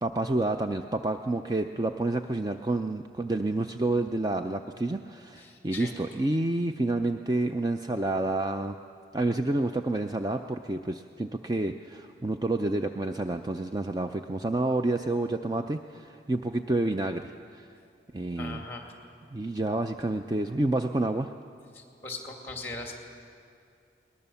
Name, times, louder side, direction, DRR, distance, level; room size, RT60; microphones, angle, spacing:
voice 1, 0.0-8.8 9.1-17.7 18.1-18.6 19.3-21.3, right 2 dB, 20° right, 6 dB, 0.4 m, -29 dB
voice 2, 5.4-6.0 18.4-18.9 21.7-22.9, left 3 dB, 10° left, 2 dB, 2.4 m, -40 dB
21.5 x 19.5 x 7.0 m, 2.4 s
head